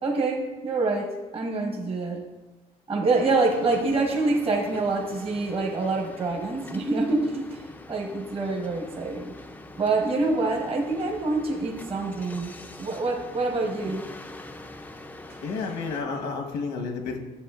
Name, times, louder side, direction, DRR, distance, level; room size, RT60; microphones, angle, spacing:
voice 1, 0.0-2.2 2.9-9.3 9.8-12.5 12.8-14.0, right 3 dB, 35° right, 0 dB, 1.0 m, -26 dB
sound 1, 3.2-16.0, left 2 dB, 10° left, 0.4 m, -44 dB
voice 2, 15.4-17.2, left 4 dB, 90° left, 2 dB, 1.2 m, -31 dB
11.0 x 7.1 x 2.4 m, 1.2 s
cardioid pair, 110°, 17 cm